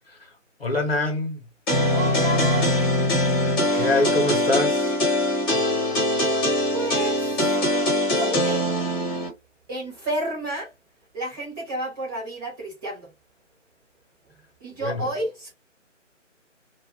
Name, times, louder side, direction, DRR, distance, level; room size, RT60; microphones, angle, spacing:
voice 1, 0.6-1.4 3.4-4.9 14.8-15.1, left 2 dB, 50° left, 1.2 m, -25 dB
sound 1, 1.7-9.3, left 1 dB, 20° left, 1.5 m, -22 dB
voice 2, 1.9-3.0 6.7-7.6 8.2-8.7 9.7-10.7 11.1-13.1 14.2-15.5, right 2 dB, 15° right, 1.2 m, -31 dB
2.7 x 2.3 x 3.3 m
figure-of-eight pair, 150°, 38 cm